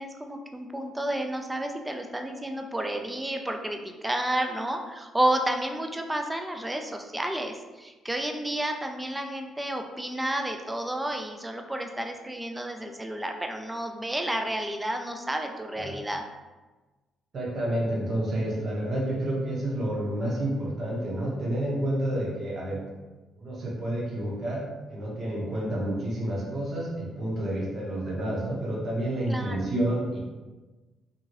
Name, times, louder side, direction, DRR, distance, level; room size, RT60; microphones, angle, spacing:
voice 1, 0.0-16.2 29.3-29.7, right 1 dB, 10° right, 4 dB, 0.3 m, -31 dB
voice 2, 17.3-22.8 23.4-30.2, right 1 dB, 45° right, -3 dB, 0.8 m, -29 dB
2.7 x 2.7 x 2.9 m, 1.2 s
cardioid pair, 95°, 0 cm